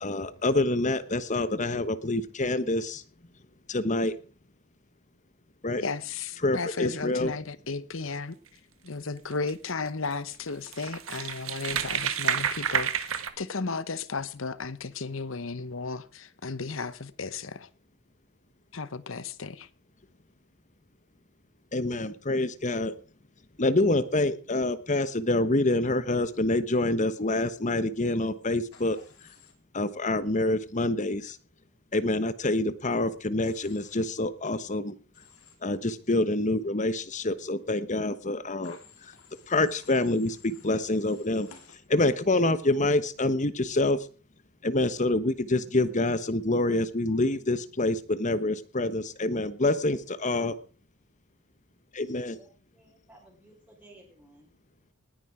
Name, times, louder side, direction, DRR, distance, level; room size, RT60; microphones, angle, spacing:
voice 1, 0.0-3.0 3.7-4.1 5.6-5.8 6.4-7.3 21.7-22.9 23.6-29.0 29.7-31.4 31.9-34.9 35.6-38.8 39.5-41.5 41.9-44.1 44.6-50.6 52.0-52.3, left 2 dB, 35° left, 1.1 m, -26 dB
voice 2, 5.8-17.7 18.7-19.7, left 4 dB, 60° left, 1.0 m, -34 dB
sound 1, 9.3-9.5 10.1-10.2 10.5-13.3, right 8 dB, 70° right, 1.5 m, -29 dB
Human voice / Train, 28.7-29.5 33.4-34.0 35.1-35.6 38.6-41.8, left 6 dB, 80° left, 4.0 m, -54 dB
voice 3, 52.3-54.5, right 1 dB, 5° right, 5.4 m, -56 dB
19.0 x 10.0 x 4.9 m
head